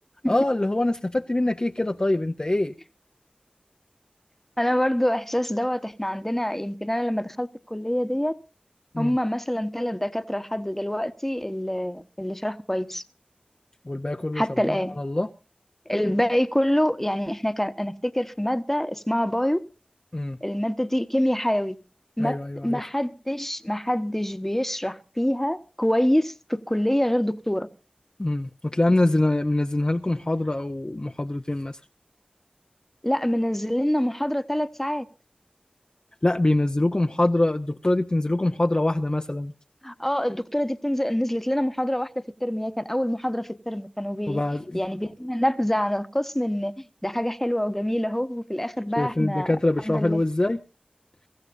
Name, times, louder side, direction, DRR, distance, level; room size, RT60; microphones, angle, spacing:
voice 1, 0.3-2.7 8.9-9.2 13.9-14.4 15.0-15.3 20.1-20.4 22.2-22.8 28.2-31.8 36.2-39.5 44.3-44.8 49.0-50.6, left 1 dB, 30° left, 0.6 m, -24 dB
voice 2, 4.6-8.3 9.0-13.0 14.3-15.0 15.9-19.6 20.4-21.8 22.2-22.4 22.6-27.7 33.0-35.1 39.8-44.4 44.7-49.6 49.8-50.2, equal, 10° left, 1.1 m, -26 dB
23.5 x 14.5 x 2.6 m
wide cardioid pair, 45°, 3 cm